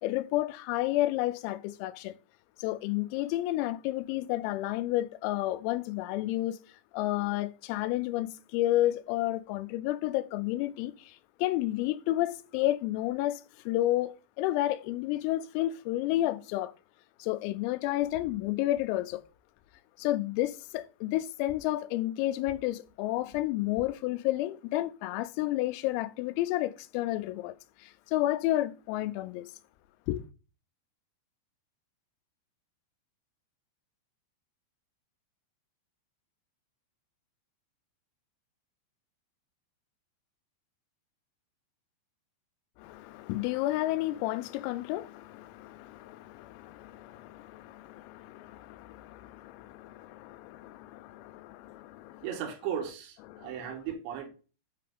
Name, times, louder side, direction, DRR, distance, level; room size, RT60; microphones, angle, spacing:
voice 1, 0.0-2.1 2.6-6.6 6.9-16.7 17.2-19.2 20.0-27.5 27.8-29.5 30.1-30.2 42.8-52.3 53.3-53.6, left 15 dB, 90° left, 3.3 m, -31 dB
voice 2, 52.2-54.3, right 9 dB, 70° right, 3.3 m, -36 dB
9.3 x 3.4 x 5.2 m
omnidirectional pair, 5.9 m